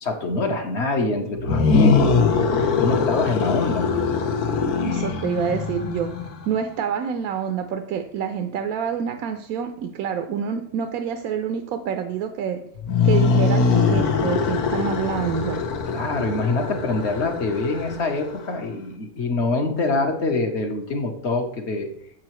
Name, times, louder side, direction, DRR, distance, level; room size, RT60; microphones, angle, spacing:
voice 1, 0.0-4.0 15.9-21.9, left 3 dB, 50° left, 4 dB, 1.2 m, -25 dB
sound 1, 1.3-6.5 12.8-18.4, left 5 dB, 90° left, 1.3 m, -22 dB
voice 2, 4.8-6.1 6.5-12.6 13.0-15.6, right 7 dB, 75° right, 7 dB, 1.0 m, -27 dB
7.6 x 7.5 x 3.0 m, 0.66 s
omnidirectional pair, 1.6 m